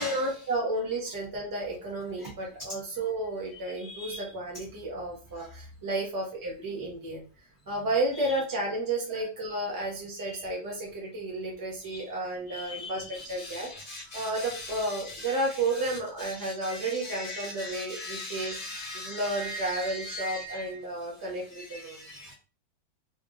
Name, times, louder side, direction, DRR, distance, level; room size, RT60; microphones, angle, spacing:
voice 1, 0.0-7.2 7.7-13.7 14.1-18.5 18.9-22.0, right 2 dB, 15° right, -3 dB, 0.6 m, -32 dB
voice 2, 3.9-4.2 11.9-12.0 12.5-14.8 15.1-15.3 16.4-19.2 19.8-20.4 21.9-22.3, left 2 dB, 60° right, -4 dB, 0.6 m, -39 dB
3.6 x 2.4 x 2.6 m, 0.35 s
omnidirectional pair, 2.2 m